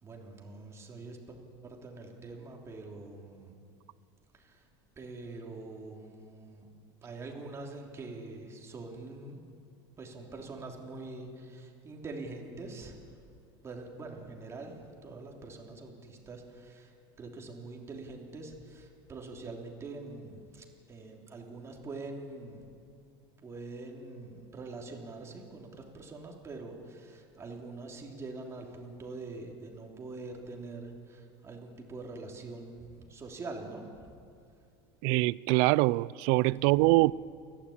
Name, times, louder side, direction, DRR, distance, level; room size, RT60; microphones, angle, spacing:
voice 1, 0.0-3.5 4.3-4.7 5.0-6.7 7.0-9.4 10.0-13.2 13.6-22.7 23.4-34.2 36.6-36.8, right 3 dB, 20° right, 3.2 m, -44 dB
voice 2, 35.0-37.1, right 22 dB, 60° right, 0.4 m, -24 dB
29.5 x 11.5 x 8.7 m
supercardioid pair, 135°, 12 cm